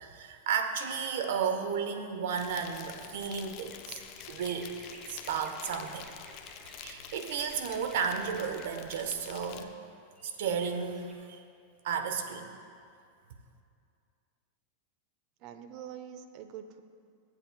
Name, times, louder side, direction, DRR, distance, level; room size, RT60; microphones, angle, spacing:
voice 1, 0.0-4.0 4.3-4.7 5.1-6.1 6.8-9.7 10.2-11.4 11.8-12.5, right 6 dB, 65° right, 7 dB, 1.1 m, -33 dB
Insect, 2.3-9.6, left 10 dB, 50° left, 0.7 m, -48 dB
sound 1, 3.6-9.4 9.7-11.1, right 1 dB, 15° right, 1.7 m, -55 dB
voice 2, 15.4-16.8, right 9 dB, 50° right, 9 dB, 0.8 m, -45 dB
23.5 x 7.9 x 2.3 m, 2.4 s
hypercardioid pair, 100°, 0 cm